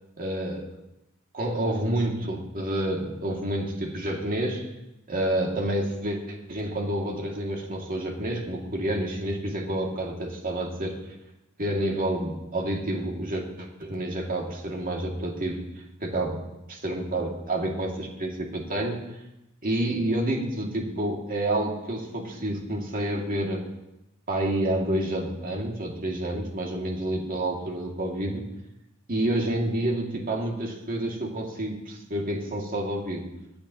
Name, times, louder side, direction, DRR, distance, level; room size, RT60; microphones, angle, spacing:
voice 1, 0.2-0.7 1.3-4.7 5.1-10.9 11.6-15.6 16.0-16.4 16.7-19.0 19.6-23.6 24.3-28.4 29.1-33.2, right 1 dB, 40° right, 0 dB, 2.2 m, -29 dB
24.0 x 8.8 x 2.9 m, 0.94 s
head